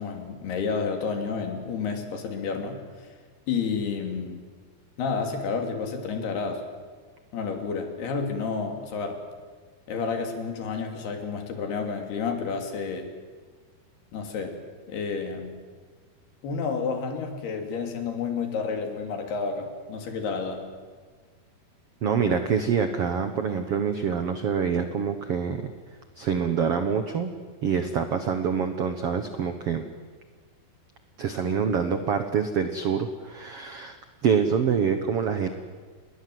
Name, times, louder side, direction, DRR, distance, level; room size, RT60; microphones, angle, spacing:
voice 1, 0.0-3.1 3.5-4.4 5.0-6.6 7.3-9.2 9.9-13.1 14.1-14.5 14.9-15.6 16.4-20.6, left 5 dB, 75° left, 4 dB, 4.8 m, -30 dB
voice 2, 22.0-25.7 26.2-27.3 27.6-29.8 31.2-34.0 34.2-35.5, right 6 dB, 80° right, 8 dB, 1.3 m, -26 dB
28.5 x 21.5 x 7.9 m, 1.5 s
omnidirectional pair, 4.7 m